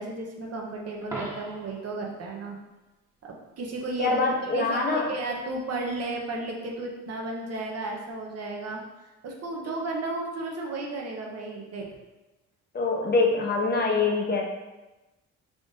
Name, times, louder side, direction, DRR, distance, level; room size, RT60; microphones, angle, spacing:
voice 1, 0.0-2.6 3.2-8.8 9.2-11.9, right 2 dB, 55° right, 0 dB, 0.8 m, -33 dB
Coin (dropping), 1.0-1.9 7.9-8.1, right 1 dB, 10° right, 0.9 m, -39 dB
voice 2, 4.0-5.1 12.7-14.4, left 3 dB, 35° left, 0 dB, 0.7 m, -24 dB
3.7 x 2.5 x 3.6 m, 1.1 s
cardioid pair, 90°, 30 cm